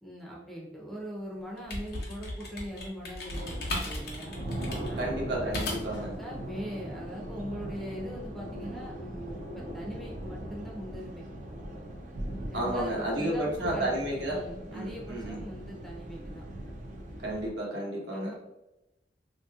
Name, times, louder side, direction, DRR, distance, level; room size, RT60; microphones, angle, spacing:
voice 1, 0.0-4.4 4.8-5.3 6.0-11.3 12.5-14.0 14.3-16.5 18.1-18.3, equal, ahead, -3 dB, 0.6 m, -41 dB
sound 1, 1.4-6.1, left 1 dB, 60° left, 0.8 m, -36 dB
sound 2, 3.3-17.5, right 1 dB, 45° right, 0.5 m, -40 dB
voice 2, 5.0-6.1 12.5-14.4 14.7-15.4 17.2-18.3, right 1 dB, 75° right, -3 dB, 1.0 m, -32 dB
3.2 x 2.7 x 2.3 m, 0.93 s
head